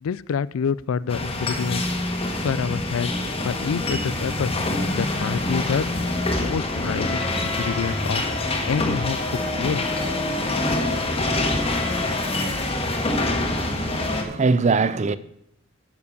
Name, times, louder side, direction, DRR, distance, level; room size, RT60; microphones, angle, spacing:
voice 1, 0.0-1.8 2.4-3.1 3.4-4.5 5.0-5.8 6.3-8.2 8.6-9.9, left 6 dB, 75° left, 0.4 m, -27 dB
sound 1, 1.1-14.2, left 2 dB, 25° left, 1.7 m, -25 dB
voice 2, 13.5-15.2, right 4 dB, 30° right, 0.4 m, -23 dB
10.0 x 7.2 x 6.8 m
head